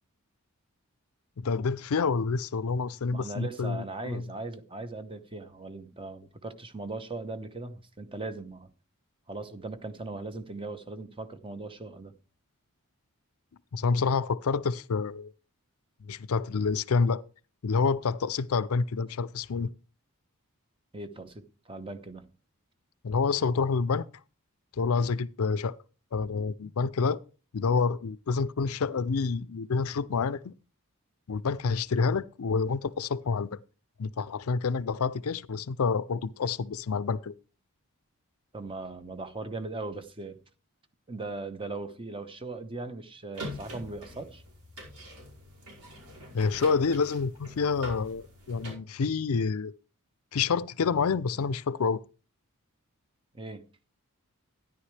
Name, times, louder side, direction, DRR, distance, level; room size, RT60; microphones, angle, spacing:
voice 1, 1.4-4.2 13.7-15.3 16.0-17.2 17.6-19.7 23.0-24.1 24.8-25.8 26.1-27.2 27.5-30.5 31.3-33.6 34.0-37.3 46.3-49.7 50.3-52.0, left 5 dB, 70° left, 0.5 m, -28 dB
voice 2, 3.1-8.7 9.3-12.1 20.9-22.3 38.5-40.4 41.1-44.4 53.3-53.6, right 2 dB, 25° right, 1.0 m, -39 dB
sound 1, 43.3-48.7, equal, 85° right, 5.3 m, -44 dB
13.0 x 10.5 x 3.3 m
head